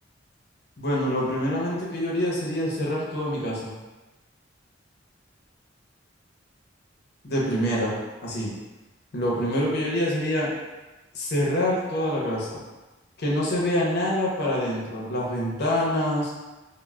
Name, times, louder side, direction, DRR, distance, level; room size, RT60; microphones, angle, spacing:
voice 1, 0.8-3.7 7.2-8.5 9.1-10.5 11.1-12.6 13.2-16.3, equal, 55° left, -4 dB, 0.6 m, -26 dB
3.1 x 2.0 x 2.3 m, 1.1 s
head